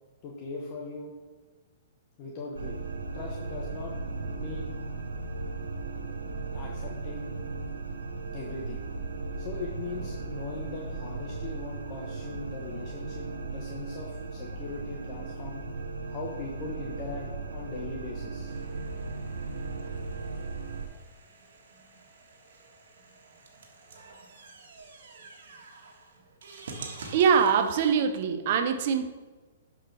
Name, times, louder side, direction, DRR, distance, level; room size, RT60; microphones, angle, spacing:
voice 1, 0.2-1.1 2.2-2.8 3.1-3.9 4.4-4.7 6.5-7.3 8.3-8.8 9.4-15.6 16.1-18.6, left 4 dB, 40° left, -1 dB, 1.2 m, -40 dB
sound 1, 2.5-20.9, right 3 dB, 85° right, 0.8 m, -36 dB
sound 2, 18.5-28.0, right 3 dB, 70° right, 1.5 m, -48 dB
voice 2, 27.1-29.1, right 6 dB, 50° right, 8 dB, 0.8 m, -23 dB
11.5 x 4.9 x 3.4 m, 1.3 s
hypercardioid pair, 125°, 0 cm